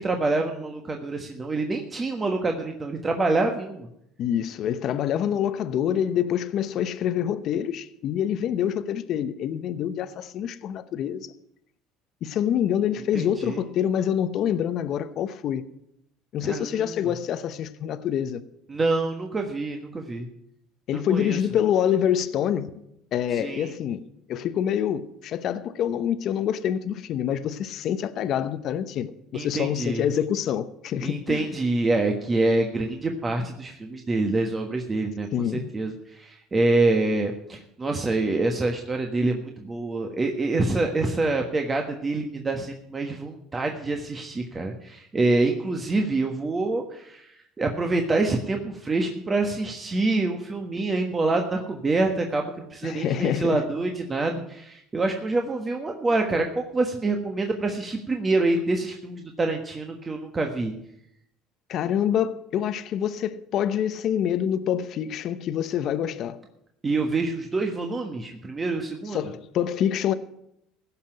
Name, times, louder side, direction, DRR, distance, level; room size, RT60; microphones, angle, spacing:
voice 1, 0.0-3.9 13.1-13.6 16.4-16.9 18.7-20.3 20.9-21.4 23.3-23.7 29.3-30.1 31.0-35.3 35.5-60.7 66.8-69.2, right 2 dB, 25° right, 1.4 m, -26 dB
voice 2, 4.2-11.4 12.2-15.7 16.3-18.4 20.9-22.8 23.1-24.0 24.3-31.5 35.3-35.7 52.8-53.6 61.7-66.4 69.1-70.1, left 9 dB, 55° left, 0.8 m, -26 dB
15.5 x 5.9 x 8.9 m
supercardioid pair, 95°, 0 cm